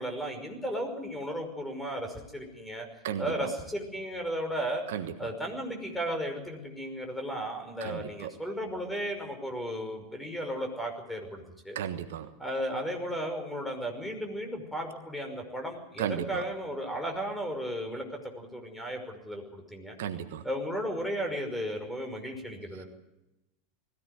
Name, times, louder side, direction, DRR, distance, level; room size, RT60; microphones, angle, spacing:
voice 1, 0.0-2.9 3.2-4.8 5.2-11.8 12.4-19.9 20.4-22.9, equal, 5° left, 4 dB, 5.7 m, -35 dB
voice 2, 7.8-8.3 11.7-12.3 16.0-16.4 20.0-20.4, right 9 dB, 65° right, 10 dB, 1.3 m, -34 dB
20.5 x 16.0 x 9.5 m, 0.96 s
figure-of-eight pair, 85°, 0 cm